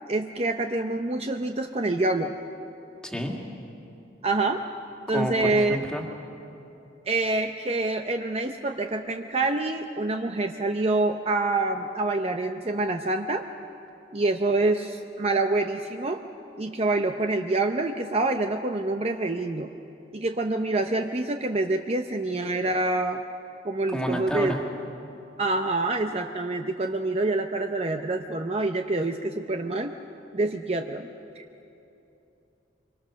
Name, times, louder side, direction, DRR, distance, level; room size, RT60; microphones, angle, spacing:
voice 1, 0.1-2.4 4.2-4.6 5.1-5.8 7.1-13.5 14.1-16.2 16.6-19.7 20.1-23.2 23.6-24.5 25.4-29.9 30.3-31.1 31.4-31.5, right 2 dB, 35° right, 5 dB, 0.7 m, -26 dB
voice 2, 3.0-3.3 5.1-6.0 23.9-24.6, equal, 5° left, 0 dB, 2.1 m, -29 dB
25.5 x 23.5 x 6.4 m, 2.8 s
head